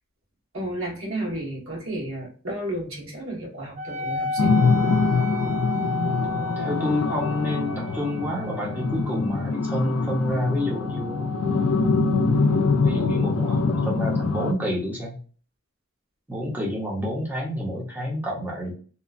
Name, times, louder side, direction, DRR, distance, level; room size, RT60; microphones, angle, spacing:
voice 1, 0.5-4.7, right 1 dB, 65° right, -3 dB, 1.3 m, -32 dB
Wind instrument woodwind instrument, 3.8-12.7, left 2 dB, 30° right, 0.3 m, -34 dB
sound 1, 4.4-14.5, left 4 dB, 70° left, 0.3 m, -24 dB
voice 2, 6.3-11.3 12.0-15.2 16.3-18.7, left 1 dB, 10° right, -4 dB, 0.7 m, -29 dB
2.9 x 2.2 x 2.4 m, 0.40 s
head